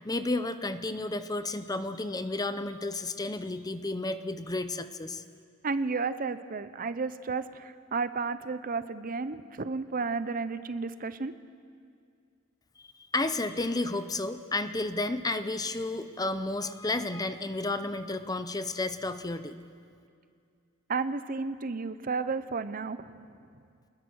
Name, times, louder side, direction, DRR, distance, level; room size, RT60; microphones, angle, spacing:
voice 1, 0.0-5.2 13.1-19.6, left 2 dB, 20° left, 11 dB, 0.7 m, -32 dB
voice 2, 5.6-11.3 20.9-23.1, right 4 dB, 45° right, 13 dB, 0.7 m, -32 dB
25.5 x 20.5 x 6.4 m, 2.3 s
head